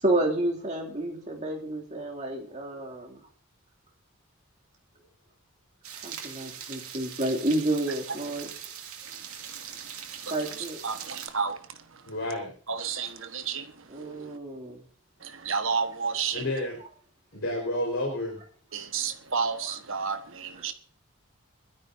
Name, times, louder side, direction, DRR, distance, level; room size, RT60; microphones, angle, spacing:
voice 1, 0.0-3.2 6.0-8.5 10.3-10.8 13.9-14.8, right 1 dB, 35° right, 2.7 m, -30 dB
sound 1, 5.8-11.3, right 8 dB, 90° right, 2.4 m, -41 dB
voice 2, 9.4-12.0 12.7-14.3 15.2-16.5 18.7-20.7, right 5 dB, 65° right, 1.4 m, -32 dB
voice 3, 12.1-12.5 16.3-16.8 17.3-18.4, left 1 dB, 60° left, 4.3 m, -30 dB
21.5 x 13.0 x 2.7 m
head